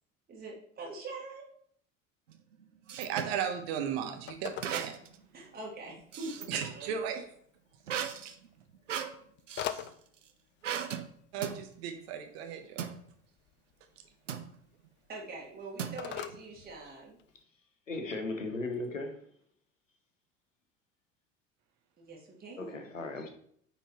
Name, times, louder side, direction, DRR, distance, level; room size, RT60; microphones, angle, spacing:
voice 1, 0.3-1.4 5.3-6.9 15.1-17.2 22.0-22.7, right 3 dB, 25° right, 1.8 m, -44 dB
sound 1, 2.3-3.4 4.6-5.2 5.6-6.8 7.9-9.9 10.6-11.1 11.4-11.6 12.8-13.0 14.3-14.5 15.8-16.4, right 8 dB, 80° right, 0.6 m, -37 dB
Telephone, 2.9-17.4, left 11 dB, 30° left, 0.4 m, -48 dB
voice 2, 3.0-5.0 6.5-7.2 8.0-8.3 11.3-12.9, right 8 dB, 55° right, 1.1 m, -36 dB
voice 3, 17.9-19.2 22.6-23.3, left 2 dB, 85° left, 1.0 m, -36 dB
9.2 x 4.2 x 3.1 m
figure-of-eight pair, 65°, 37 cm